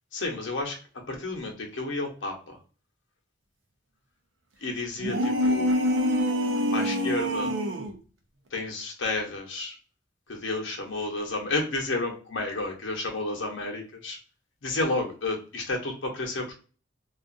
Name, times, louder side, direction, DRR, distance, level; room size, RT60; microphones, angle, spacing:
voice 1, 0.1-0.8 1.1-2.6 4.6-5.7 6.7-7.5 8.5-9.7 10.3-14.2 14.6-16.5, left 2 dB, 75° left, 1 dB, 0.9 m, -31 dB
sound 1, 5.0-8.0, equal, 85° right, 0.6 m, -25 dB
2.5 x 2.4 x 2.4 m, 0.37 s
head